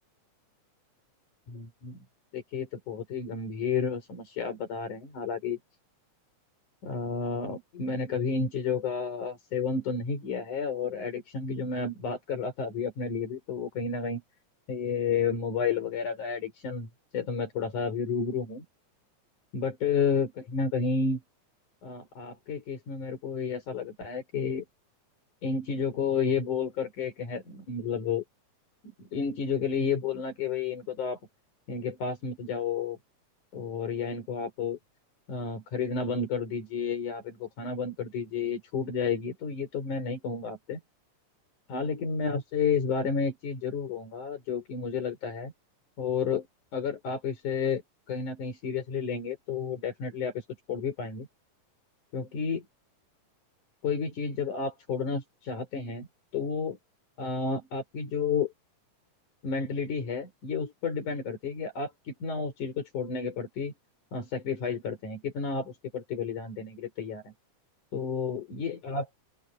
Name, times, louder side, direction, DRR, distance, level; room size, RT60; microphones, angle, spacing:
voice 1, 1.5-2.0 2.3-5.6 6.8-14.2 14.7-16.9 17.1-18.6 19.5-21.2 21.8-24.6 25.4-28.2 29.1-31.2 31.7-33.0 33.5-34.8 35.3-40.8 41.7-45.5 46.0-46.5 46.7-47.8 48.1-51.3 52.1-52.6 53.8-56.1 56.3-56.8 57.2-58.5 59.4-63.7 64.1-67.3 67.9-69.2, left 5 dB, 85° left, 6.1 m, -31 dB
open air
omnidirectional pair, 3.4 m